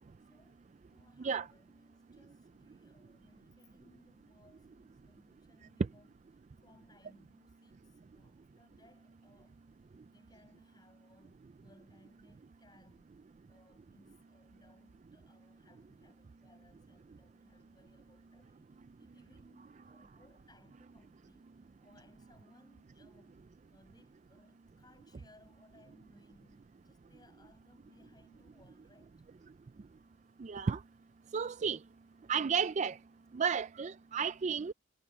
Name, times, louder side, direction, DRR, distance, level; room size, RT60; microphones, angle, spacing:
voice 1, 0.2-6.1 6.6-9.8 10.1-13.1 13.5-29.3, left 1 dB, 20° left, 7.3 m, -65 dB
voice 2, 30.4-30.8 31.3-31.8 32.3-32.9 33.4-34.7, right 6 dB, 35° right, 0.3 m, -32 dB
head